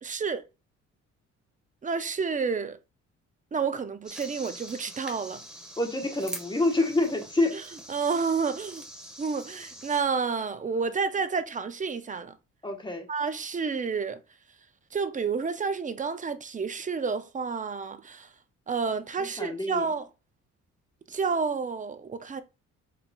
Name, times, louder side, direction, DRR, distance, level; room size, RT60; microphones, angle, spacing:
voice 1, 0.0-0.4 1.8-2.8 3.5-5.4 7.9-8.8 9.2-12.4 13.1-14.2 14.9-18.3 18.7-20.0 21.1-22.4, right 5 dB, 25° right, 0.4 m, -30 dB
sound 1, 4.0-10.0, equal, 5° right, 1.2 m, -44 dB
voice 2, 5.8-7.6 12.6-13.1 19.2-19.9, left 2 dB, 15° left, 1.1 m, -27 dB
4.2 x 3.8 x 2.2 m
cardioid pair, 90°, 30 cm